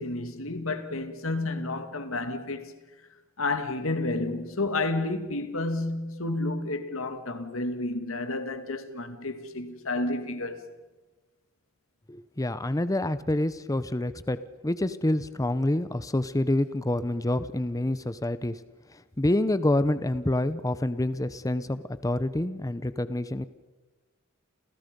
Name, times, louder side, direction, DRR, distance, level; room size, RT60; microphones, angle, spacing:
voice 1, 0.0-2.7 3.4-10.6, left 2 dB, 70° left, 2.3 m, -31 dB
voice 2, 12.1-14.4 14.6-18.6 18.9-23.5, left 1 dB, 15° left, 0.7 m, -27 dB
30.0 x 29.0 x 5.3 m
head